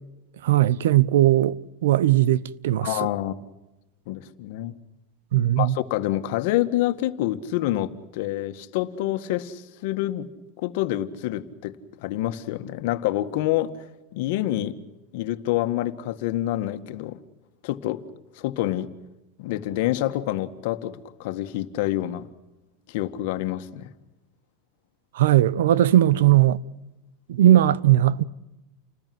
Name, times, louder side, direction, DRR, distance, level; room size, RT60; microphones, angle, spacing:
voice 1, 0.4-2.9 5.3-5.8 25.1-26.6 27.3-28.2, right 13 dB, 85° right, 0.9 m, -18 dB
voice 2, 2.8-3.4 4.1-4.7 5.6-10.3 10.6-13.7 14.1-14.8 15.1-17.2 17.6-18.0 18.4-18.9 19.4-22.3 22.9-23.9, left 14 dB, 65° left, 1.8 m, -27 dB
29.0 x 20.0 x 7.9 m
supercardioid pair, 145°, 0 cm